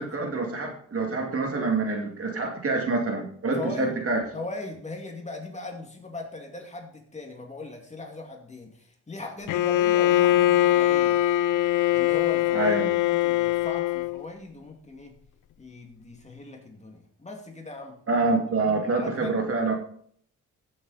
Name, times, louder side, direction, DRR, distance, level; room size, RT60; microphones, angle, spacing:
voice 1, 0.0-4.2 12.5-12.9 18.1-19.7, right 3 dB, 45° right, 2 dB, 2.4 m, -26 dB
voice 2, 3.6-4.0 4.3-11.2 11.9-12.8 13.0-15.2 15.6-18.3 18.7-19.3, left 2 dB, 20° left, 2 dB, 2.4 m, -39 dB
Bowed string instrument, 9.5-14.2, left 14 dB, 70° left, 0.5 m, -22 dB
15.5 x 7.7 x 4.2 m, 0.62 s
cardioid pair, 110°, 32 cm